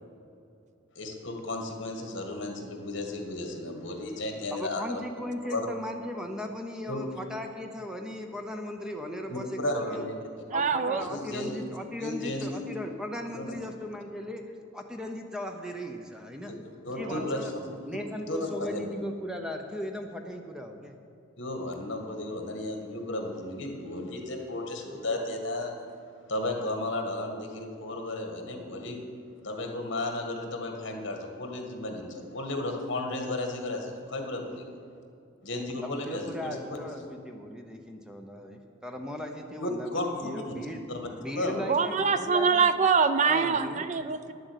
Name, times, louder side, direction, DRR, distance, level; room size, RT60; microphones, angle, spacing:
voice 1, 1.0-5.0 5.5-5.7 6.9-7.0 9.3-10.2 10.9-11.6 12.0-12.6 13.3-13.6 16.5-16.6 16.8-17.5 18.3-18.8 21.4-25.7 26.3-29.0 29.4-34.6 35.4-36.8 39.6-41.1 41.4-41.6, left 2 dB, 60° left, 3 dB, 1.8 m, -34 dB
voice 2, 4.5-10.0 10.5-14.4 14.7-16.6 17.0-17.5 17.9-21.0 24.9-25.0 25.3-25.4 29.5-29.6 35.5-40.8 41.2-42.7 43.2-43.9, left 1 dB, 5° right, 3 dB, 0.7 m, -37 dB
voice 3, 10.5-11.1 17.0-17.3 41.7-44.3, right 5 dB, 35° right, 11 dB, 0.4 m, -25 dB
10.5 x 7.7 x 8.2 m, 2.5 s
head